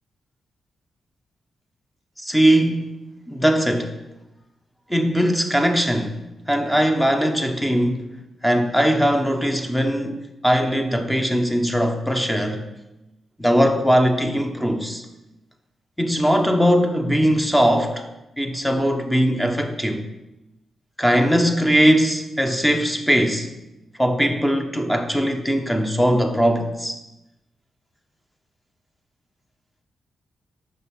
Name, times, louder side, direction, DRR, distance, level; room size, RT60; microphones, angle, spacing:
voice 1, 2.2-3.0 3.3-3.9 4.9-6.2 6.5-8.1 8.4-10.2 10.4-12.7 13.4-15.0 16.0-18.0 18.4-20.1 21.0-23.5 24.0-27.0, equal, 5° left, 0.9 m, -20 dB
6.0 x 5.2 x 5.7 m
cardioid pair, 95°, 0 cm